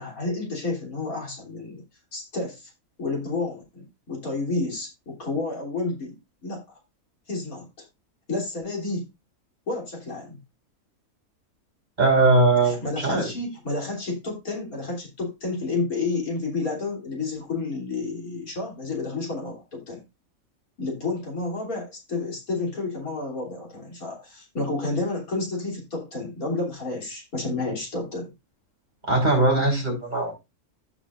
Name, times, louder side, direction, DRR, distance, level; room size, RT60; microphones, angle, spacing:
voice 1, 0.0-1.8 2.1-2.7 3.0-6.2 6.4-6.6 7.3-7.7 8.3-9.1 9.7-10.4 12.6-20.0 20.8-28.3, left 3 dB, 80° left, -1 dB, 3.5 m, -30 dB
voice 2, 12.0-13.3 29.0-30.3, right 2 dB, 30° right, -2 dB, 4.0 m, -20 dB
14.5 x 5.6 x 2.4 m, 0.24 s
omnidirectional pair, 1.5 m